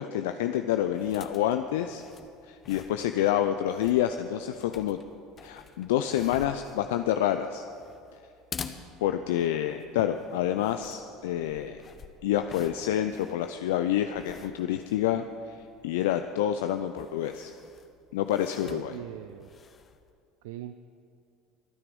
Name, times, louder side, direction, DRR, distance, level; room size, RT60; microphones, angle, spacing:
voice 1, 0.0-2.0 2.5-5.0 5.4-7.6 9.0-11.8 12.2-15.3 15.8-17.5 18.1-18.9, left 11 dB, 75° left, 8 dB, 0.5 m, -28 dB
sound 1, 0.8-20.1, left 6 dB, 35° left, 1.1 m, -49 dB
voice 2, 18.6-19.5 20.4-20.8, right 13 dB, 70° right, 11 dB, 0.5 m, -40 dB
24.5 x 9.8 x 5.3 m, 2.5 s
hypercardioid pair, 70°, 0 cm